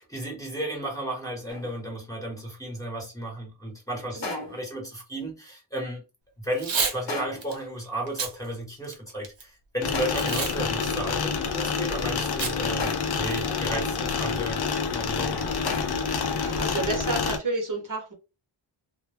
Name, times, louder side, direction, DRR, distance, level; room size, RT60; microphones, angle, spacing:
voice 1, 0.0-6.0 6.4-15.5, right 1 dB, 10° left, 1.0 m, -34 dB
sound 1, 1.5-1.9 4.2-4.8 7.1-7.6 9.9-10.5 12.8-13.4 15.7-16.2, left 4 dB, 80° left, 1.0 m, -36 dB
Packing tape duct tape / Tearing, 6.5-7.0 7.4-7.5 8.1-8.3 8.8-9.4 10.2-10.5 10.8-10.9 12.4-12.5 12.9-13.0 13.3-13.6, right 5 dB, 75° right, 0.8 m, -29 dB
sound 2, 9.8-17.4, left 5 dB, 60° left, 0.6 m, -28 dB
voice 2, 16.4-18.1, right 3 dB, 45° right, 0.9 m, -30 dB
2.2 x 2.1 x 3.2 m
wide cardioid pair, 125°, 44 cm